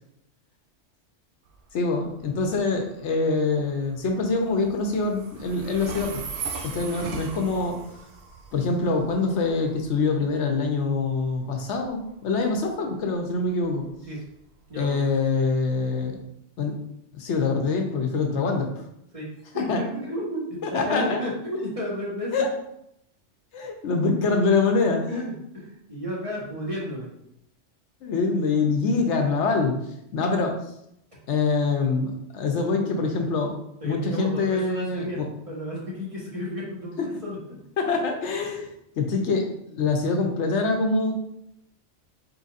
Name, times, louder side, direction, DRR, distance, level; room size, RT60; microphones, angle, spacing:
Train, 1.5-16.2, right 5 dB, 65° right, 0.8 m, -41 dB
voice 1, 1.7-6.2 6.6-7.8 8.5-13.8 14.8-16.2 16.6-16.8 17.1-18.7 19.7-19.8 20.6-21.2 22.3-22.5 23.5-25.2 28.0-29.8 30.1-30.6 31.3-33.5 33.8-35.3 37.0-37.1 37.8-38.7 39.0-41.1, left 4 dB, 75° left, 3 dB, 1.0 m, -24 dB
voice 2, 14.7-15.1 19.1-19.3 19.5-22.3 25.1-27.1 33.8-37.6, left 1 dB, 30° right, -6 dB, 1.3 m, -32 dB
4.6 x 4.0 x 2.4 m, 0.78 s
omnidirectional pair, 1.2 m